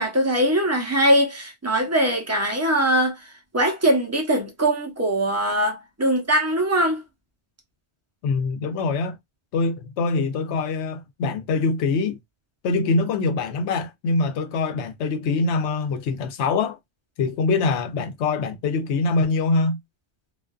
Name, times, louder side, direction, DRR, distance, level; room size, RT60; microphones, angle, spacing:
voice 1, 0.0-3.2 3.5-7.0, right 1 dB, 20° right, 0.6 m, -21 dB
voice 2, 8.2-9.2 9.5-12.2 12.6-16.8 17.2-19.8, left 3 dB, 80° left, 0.9 m, -24 dB
2.4 x 2.4 x 2.3 m
omnidirectional pair, 1.1 m